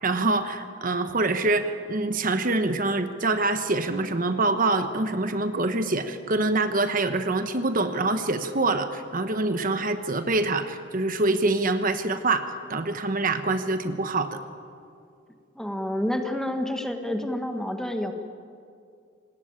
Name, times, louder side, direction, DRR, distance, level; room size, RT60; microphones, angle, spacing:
voice 1, 0.0-14.4, right 2 dB, 45° right, 9 dB, 1.2 m, -25 dB
voice 2, 15.5-18.1, left 1 dB, 5° left, 5 dB, 1.6 m, -29 dB
27.0 x 19.0 x 8.9 m, 2.4 s
head